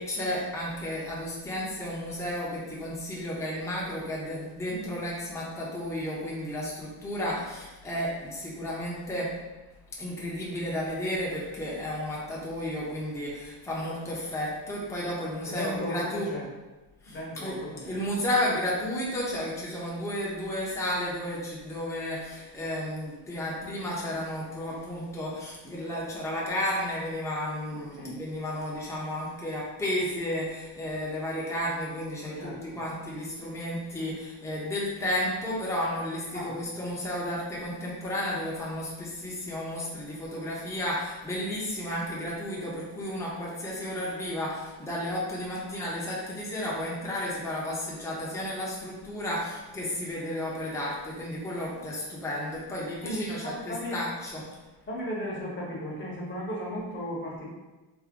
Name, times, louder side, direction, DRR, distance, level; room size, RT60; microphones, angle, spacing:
voice 1, 0.0-9.4 10.0-16.3 17.0-54.5, left 1 dB, 5° left, -5 dB, 0.7 m, -33 dB
voice 2, 15.4-16.5 17.1-18.0 27.7-28.2 32.4-32.8 36.3-36.7 53.0-54.0 54.9-57.5, equal, 25° left, -4 dB, 1.0 m, -35 dB
3.5 x 2.2 x 3.6 m, 1.1 s
cardioid pair, 125°, 42 cm